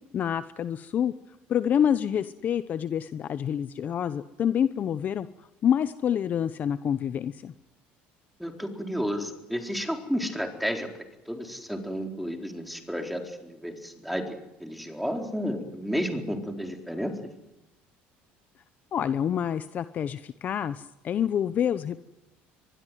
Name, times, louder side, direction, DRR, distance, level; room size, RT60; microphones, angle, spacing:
voice 1, 0.1-1.1 1.5-5.3 5.6-7.5 18.9-22.0, left 9 dB, 40° left, 13 dB, 0.9 m, -27 dB
voice 2, 8.4-10.9 11.3-17.2, equal, ahead, 4 dB, 4.2 m, -32 dB
23.5 x 21.5 x 9.4 m, 0.92 s
cardioid pair, 125°, 4 cm